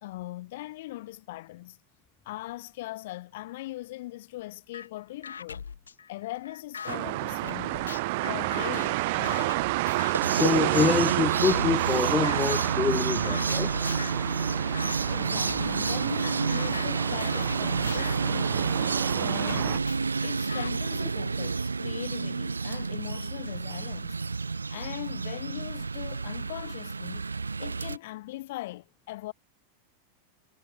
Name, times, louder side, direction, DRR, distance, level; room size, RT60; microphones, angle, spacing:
voice 1, 0.0-1.8 2.3-5.7 6.1-7.8 8.2-9.6 15.1-18.6 19.2-19.9 20.2-24.2 24.7-27.3 27.6-29.3, left 17 dB, 55° left, 1.9 m, -40 dB
sound 1, 4.7-4.9 5.2-7.0 7.5-10.3 10.7-11.0 11.5-12.0 12.2-12.8 13.2-14.2 14.7-15.0 15.5-19.0 19.5-20.7, left 6 dB, 70° left, 0.5 m, -41 dB
sound 2, 6.9-19.8, right 22 dB, 50° right, 0.9 m, -29 dB
sound 3, 9.8-28.0, right 4 dB, 75° right, 0.5 m, -30 dB
voice 2, 10.3-13.7, left 5 dB, 15° left, 0.5 m, -26 dB
figure-of-eight pair, 90°, 0 cm